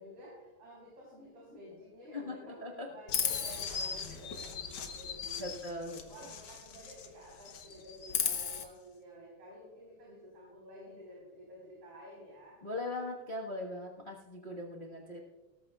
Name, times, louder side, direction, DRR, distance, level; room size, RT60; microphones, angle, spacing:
voice 1, 0.0-5.8 6.1-12.5, equal, 45° right, -5 dB, 4.6 m, -51 dB
voice 2, 2.1-2.9 5.4-6.3 12.6-15.2, left 2 dB, 80° left, -3 dB, 0.4 m, -40 dB
Chirp tweet, 3.1-7.1 7.4-8.6, left 7 dB, 60° left, 1.4 m, -36 dB
18.5 x 13.5 x 2.4 m, 1.1 s
omnidirectional pair, 3.5 m